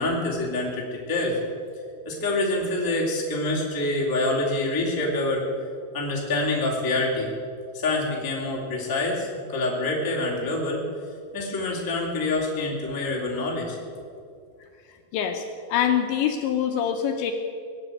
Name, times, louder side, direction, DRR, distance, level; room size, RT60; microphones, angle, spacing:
voice 1, 0.0-1.4 2.0-5.4 5.9-7.3 7.7-10.8 11.3-13.8, left 2 dB, 10° left, -3 dB, 1.3 m, -26 dB
voice 2, 15.1-17.3, left 9 dB, 75° left, 5 dB, 2.8 m, -25 dB
20.0 x 8.0 x 9.0 m, 2.3 s
omnidirectional pair, 5.8 m